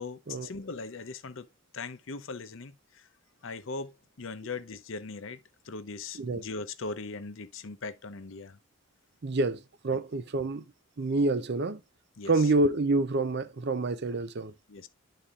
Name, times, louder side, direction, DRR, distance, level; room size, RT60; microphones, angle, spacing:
voice 1, 0.0-1.5 1.7-3.1 3.4-8.6 12.2-12.5 14.7-14.9, left 4 dB, 60° left, 0.7 m, -40 dB
voice 2, 9.2-10.6 11.0-11.8 12.3-14.5, right 2 dB, 50° right, 0.5 m, -27 dB
11.5 x 4.2 x 2.4 m
head